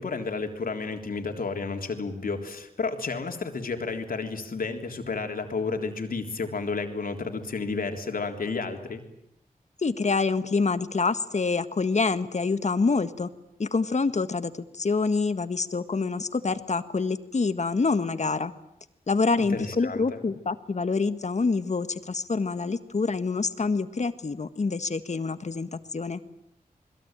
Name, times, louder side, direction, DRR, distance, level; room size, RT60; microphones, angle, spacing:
voice 1, 0.0-9.0 19.4-20.2, left 4 dB, 80° left, 5 dB, 3.6 m, -31 dB
voice 2, 9.8-13.3 13.6-18.5 19.1-26.2, left 4 dB, 50° left, 11 dB, 1.7 m, -26 dB
29.0 x 21.0 x 9.1 m, 0.79 s
wide cardioid pair, 70°, 15 cm